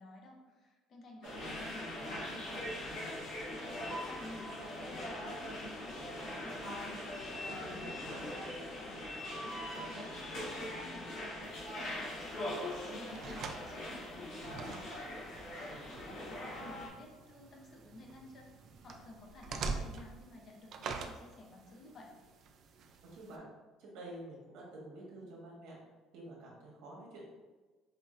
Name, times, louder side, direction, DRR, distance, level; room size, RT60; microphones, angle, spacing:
voice 1, 0.0-7.0 7.3-9.1 9.4-15.0 15.7-18.5 18.8-22.1, left 2 dB, 35° left, 0 dB, 0.6 m, -53 dB
sound 1, 1.2-16.9, left 1 dB, 65° left, 1.1 m, -41 dB
voice 2, 7.4-8.2 15.7-16.5 23.0-23.5 23.8-25.8 26.1-27.2, right 1 dB, 70° right, -4 dB, 1.3 m, -50 dB
sound 2, 11.4-23.4, right 4 dB, 45° right, 0.3 m, -46 dB
5.0 x 2.5 x 2.5 m, 1.3 s
cardioid pair, 165°, 0 cm